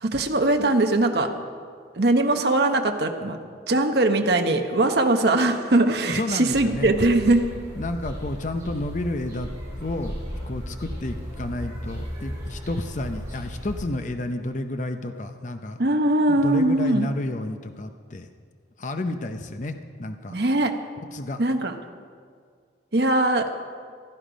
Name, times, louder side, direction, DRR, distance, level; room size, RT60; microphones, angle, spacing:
voice 1, 0.0-1.3 2.0-3.4 3.7-7.5 15.8-17.1 20.3-20.7 21.4-21.7 22.9-23.4, right 2 dB, 60° right, 5 dB, 1.0 m, -21 dB
voice 2, 6.0-6.9 7.7-9.5 9.8-15.8 16.3-18.3 18.8-20.4 21.1-21.4, left 2 dB, 40° left, 7 dB, 0.6 m, -31 dB
sound 1, 6.5-13.8, equal, 15° right, 4.6 m, -35 dB
16.5 x 12.0 x 5.1 m, 2.1 s
head